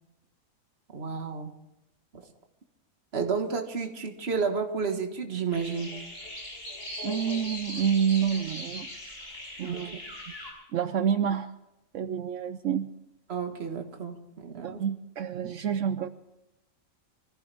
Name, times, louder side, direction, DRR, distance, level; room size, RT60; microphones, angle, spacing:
voice 1, 0.9-1.5 2.1-2.3 3.1-6.0 9.6-10.0 13.3-14.8, right 5 dB, 50° right, 5 dB, 1.8 m, -31 dB
sound 1, 5.5-10.5, left 1 dB, 45° left, 6.3 m, -39 dB
voice 2, 7.0-8.9 9.6-10.0 10.7-11.5 11.9-12.9 14.6-16.1, right 8 dB, 70° right, 11 dB, 1.0 m, -28 dB
25.0 x 15.5 x 3.4 m, 0.96 s
omnidirectional pair, 1.4 m